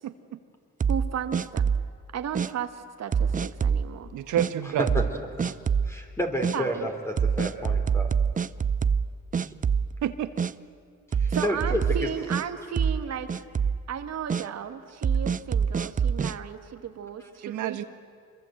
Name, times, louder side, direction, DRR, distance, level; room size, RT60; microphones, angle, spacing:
voice 1, 0.0-0.4 4.1-4.9 10.0-10.3 17.4-17.8, right 11 dB, 85° right, 10 dB, 1.5 m, -29 dB
sound 1, 0.8-1.9 2.3-2.5 3.1-3.9 4.4-4.5 4.9-5.1 5.4-5.9 6.4-6.6 7.2-9.1 9.3-10.1 10.4-10.5 11.1-12.4 12.8-13.0 13.3-13.8 14.3-14.4 15.0-16.3, right 6 dB, 25° right, 0.5 m, -25 dB
voice 2, 0.9-1.7 2.1-4.1 6.5-6.9 11.3-13.3 13.9-17.8, right 8 dB, 60° right, 8 dB, 1.6 m, -34 dB
voice 3, 5.9-8.1 9.4-9.5 11.2-11.8, equal, 10° left, 2 dB, 3.1 m, -31 dB
25.0 x 22.5 x 8.0 m, 2.3 s
cardioid pair, 90°, 30 cm